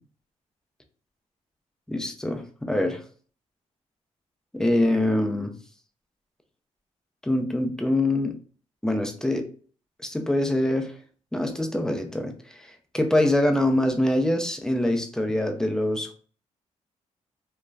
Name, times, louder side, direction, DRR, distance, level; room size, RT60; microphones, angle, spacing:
voice 1, 1.9-3.0 4.5-5.5 7.2-8.4 8.8-9.5 10.0-10.9 11.3-16.1, left 1 dB, 5° left, 0.4 m, -24 dB
2.3 x 2.0 x 3.2 m
cardioid pair, 115°, 12 cm